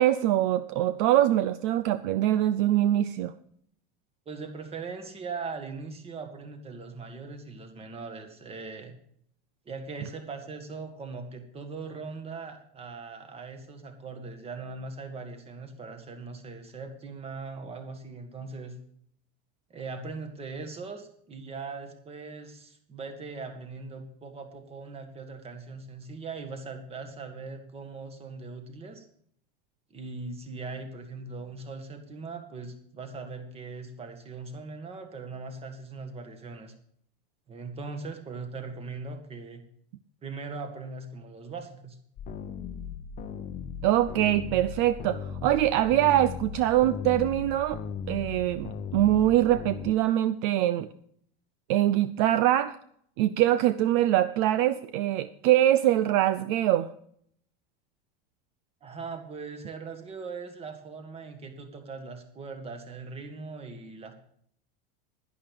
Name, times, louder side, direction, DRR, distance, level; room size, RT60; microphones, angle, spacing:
voice 1, 0.0-3.3 43.8-47.8 48.1-50.9 51.7-52.7 53.2-56.9, right 13 dB, 55° right, 13 dB, 0.6 m, -23 dB
voice 2, 4.3-9.0 9.7-18.8 19.7-29.1 29.9-36.7 37.5-39.6 40.2-42.0 58.8-64.1, right 4 dB, 20° right, 7 dB, 1.8 m, -40 dB
sound 1, 42.2-49.9, left 6 dB, 25° left, 0.8 m, -38 dB
11.5 x 11.0 x 5.3 m, 0.65 s
supercardioid pair, 150°, 29 cm